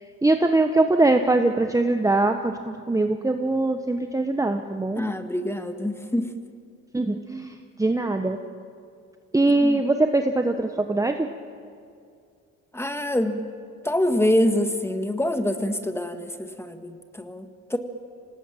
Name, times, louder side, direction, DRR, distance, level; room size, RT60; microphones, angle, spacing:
voice 1, 0.2-5.0 6.9-8.4 9.3-11.3, right 2 dB, 10° right, 6 dB, 1.1 m, -22 dB
voice 2, 5.0-6.3 9.6-9.8 12.7-13.4 13.8-17.8, left 1 dB, 10° left, 7 dB, 1.9 m, -25 dB
26.0 x 18.5 x 9.1 m, 2.3 s
cardioid pair, 90°, 30 cm